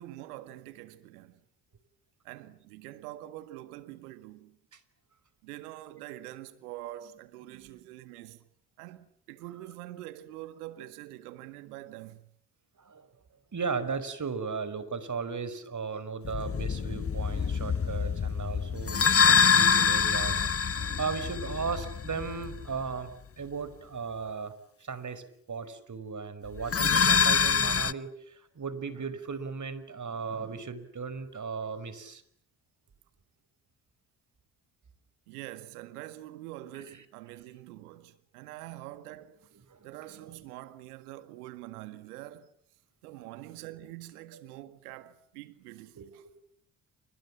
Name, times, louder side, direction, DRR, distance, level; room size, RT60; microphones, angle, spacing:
voice 1, 0.0-1.4 2.2-4.6 5.4-8.5 8.8-12.4 35.3-39.6 39.8-42.5 43.0-46.3, right 15 dB, 85° right, 1.9 m, -45 dB
voice 2, 7.5-7.9 12.8-13.1 13.5-24.5 24.8-32.2 36.7-37.0 39.7-40.2 43.2-43.3 44.3-44.4 46.0-46.1, right 5 dB, 40° right, 5.1 m, -37 dB
sound 1, 16.2-22.9 26.6-27.9, left 6 dB, 30° left, 1.2 m, -25 dB
29.0 x 27.0 x 7.4 m
hypercardioid pair, 50°, 44 cm